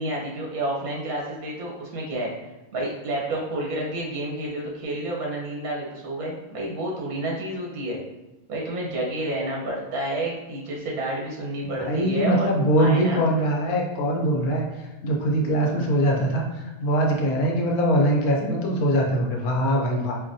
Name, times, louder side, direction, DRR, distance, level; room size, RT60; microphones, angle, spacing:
voice 1, 0.0-2.3 2.7-8.0 8.5-12.5 12.8-13.3, right 1 dB, 80° right, -3 dB, 1.4 m, -30 dB
voice 2, 11.8-14.7 15.0-20.2, right 1 dB, 85° left, 0 dB, 1.2 m, -22 dB
5.1 x 2.2 x 2.6 m, 1.1 s
omnidirectional pair, 1.5 m